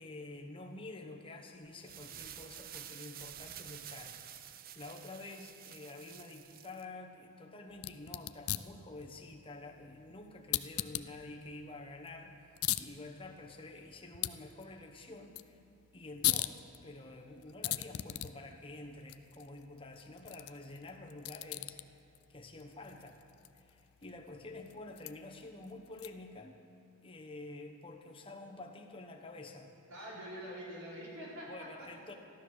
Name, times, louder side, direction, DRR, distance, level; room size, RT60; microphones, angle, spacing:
voice 1, 0.0-15.6 15.9-16.6 16.8-21.8 22.3-23.2 23.5-26.6 27.0-29.8 31.5-32.1, left 2 dB, 25° left, 2 dB, 1.1 m, -49 dB
sound 1, 1.7-6.8, right 10 dB, 40° right, 0.5 m, -50 dB
sound 2, 7.7-26.4, left 15 dB, 80° left, 0.4 m, -41 dB
voice 2, 29.9-31.9, equal, 85° right, -6 dB, 4.4 m, -45 dB
14.5 x 12.0 x 6.4 m, 2.7 s
head